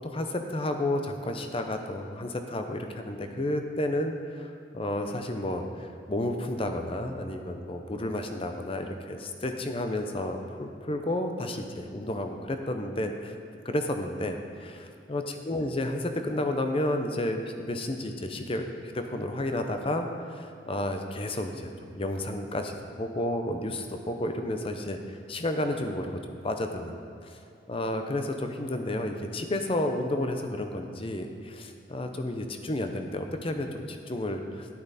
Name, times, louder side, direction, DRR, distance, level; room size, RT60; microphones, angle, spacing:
voice 1, 0.1-13.3 13.6-18.7 18.9-21.6 21.9-26.9 27.2-27.4 27.7-34.7, left 1 dB, 30° left, 5 dB, 0.7 m, -31 dB
11.5 x 8.4 x 4.1 m, 2.6 s
head